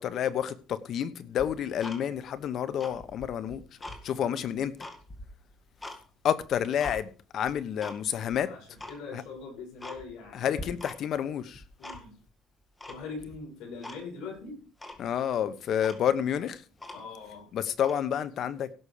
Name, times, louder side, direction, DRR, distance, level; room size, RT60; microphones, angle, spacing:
voice 1, 0.0-3.6 4.0-4.7 6.2-8.5 9.1-9.2 10.3-11.6 15.0-16.6 17.5-18.7, left 9 dB, 55° left, 1.2 m, -29 dB
Tick-tock, 1.4-2.4 2.7-4.0 4.5-6.0 6.4-7.0 7.5-8.0 8.3-8.4 8.8-9.0 9.4-9.5 9.8-10.3 10.6-11.2 11.5-12.3 12.8-13.4 13.8-14.0 14.4-14.5 14.8-15.0 15.5-15.6 15.8-17.3 17.7-18.0, left 1 dB, 15° left, 2.0 m, -43 dB
voice 2, 4.1-4.5 8.3-10.8 11.8-12.2 12.9-14.6 16.9-17.5, left 4 dB, 80° left, 7.1 m, -42 dB
17.0 x 6.3 x 5.1 m
cardioid pair, 125°, 0 cm